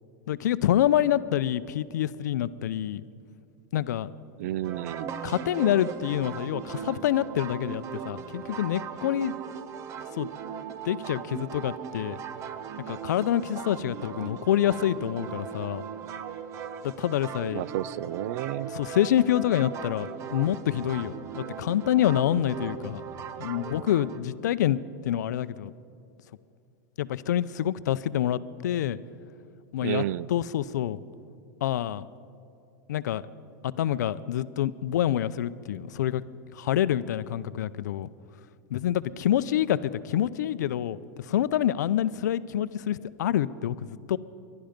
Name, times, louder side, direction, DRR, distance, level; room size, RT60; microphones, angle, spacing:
voice 1, 0.3-3.0 3.7-4.1 5.2-9.3 10.1-10.3 10.8-12.2 12.9-15.8 16.8-17.6 18.7-23.0 23.4-25.7 27.0-29.0 29.7-30.0 30.3-31.0 31.6-32.1 32.9-33.2 33.8-36.2 36.5-38.1 38.7-44.2, left 11 dB, 85° left, 0.5 m, -27 dB
voice 2, 4.4-5.2 17.5-18.7 29.8-30.3, right 14 dB, 65° right, 0.4 m, -31 dB
sound 1, 4.6-24.2, right 7 dB, 35° right, 0.7 m, -38 dB
21.5 x 12.0 x 5.1 m
supercardioid pair, 145°, 9 cm